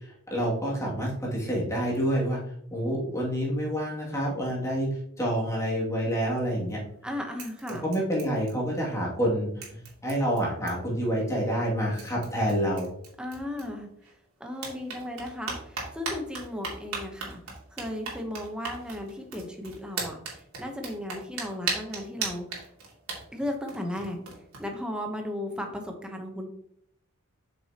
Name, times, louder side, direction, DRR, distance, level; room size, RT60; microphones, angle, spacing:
voice 1, 0.0-2.4 2.7-4.9 5.2-6.8 7.8-12.9, equal, 15° left, -5 dB, 2.4 m, -28 dB
sound 1, 6.5-7.0 7.4-8.9 9.2-9.3 9.6-11.0 11.6-11.7 12.0-14.1 14.5-24.6, right 4 dB, 90° right, 2.5 m, -38 dB
voice 2, 7.0-7.8 13.2-13.9 14.4-17.4 17.7-22.7 23.3-24.2 24.6-26.5, left 1 dB, 5° right, 2 dB, 1.0 m, -35 dB
8.1 x 6.2 x 2.9 m, 0.70 s
head